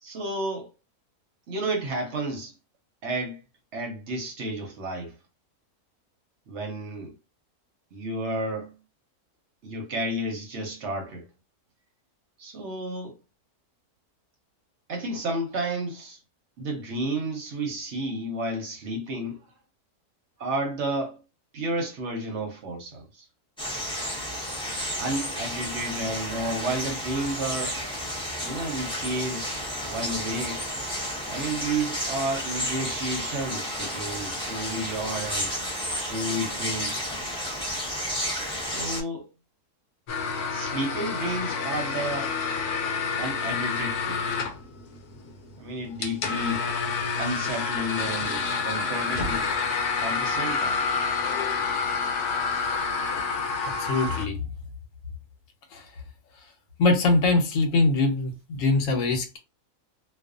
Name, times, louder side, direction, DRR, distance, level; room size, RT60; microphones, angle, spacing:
voice 1, 0.0-0.7 1.5-2.5 3.0-3.4 3.7-5.1 6.5-7.1 7.9-8.7 9.6-11.2 12.4-13.2 14.9-16.2 16.6-19.4 20.4-21.2 21.5-23.3 25.0-27.8 28.4-30.6 31.3-35.5 36.1-37.0 38.6-39.3 40.5-42.3 43.2-44.2 45.5-46.7 47.2-49.5 50.0-50.8 52.5-52.8, right 1 dB, 60° right, 0.8 m, -31 dB
sound 1, 23.6-39.0, equal, 5° left, 0.5 m, -32 dB
sound 2, 40.1-54.3, left 5 dB, 85° left, 1.1 m, -28 dB
voice 2, 53.6-54.5 55.7-55.9 56.8-59.4, left 3 dB, 65° left, 1.0 m, -23 dB
2.5 x 2.3 x 2.4 m
omnidirectional pair, 1.6 m